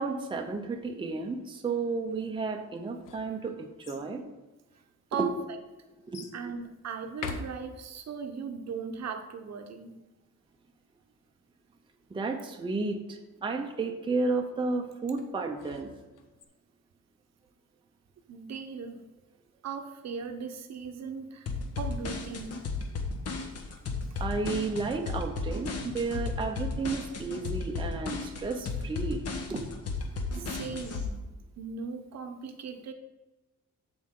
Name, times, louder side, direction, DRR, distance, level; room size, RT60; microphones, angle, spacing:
voice 1, 0.0-4.2 5.2-5.3 6.1-6.3 12.1-15.9 24.2-29.2 29.5-29.6 30.4-30.5, right 3 dB, 15° right, 3 dB, 0.6 m, -32 dB
sound 1, 2.8-4.1 4.9-5.0 6.1-6.4 7.1-8.1 15.2-16.4, left 4 dB, 85° left, 1.0 m, -43 dB
voice 2, 6.3-10.0 18.3-19.1 19.6-21.5 21.8-22.6 30.4-31.2 31.6-32.9, right 6 dB, 55° right, 6 dB, 0.9 m, -38 dB
sound 2, 21.5-31.1, left 3 dB, 50° left, 1.2 m, -34 dB
14.0 x 4.8 x 3.7 m, 1.2 s
wide cardioid pair, 180°, 31 cm